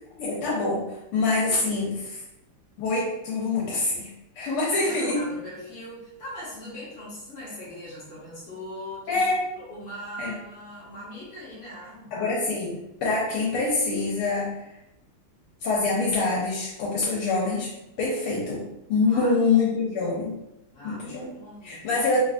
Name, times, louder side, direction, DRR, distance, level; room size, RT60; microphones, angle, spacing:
voice 1, 0.2-0.8 1.1-2.2 2.8-5.2 9.1-9.4 10.2-10.3 12.1-12.7 13.0-14.5 15.6-17.7 18.0-20.3 20.8-21.3 21.6-22.2, left 3 dB, 85° left, -5 dB, 1.6 m, -25 dB
voice 2, 4.7-9.2 9.6-12.1 19.1-19.5 20.7-22.1, equal, 50° left, -8 dB, 0.7 m, -40 dB
3.9 x 2.4 x 2.4 m, 0.87 s
omnidirectional pair, 2.4 m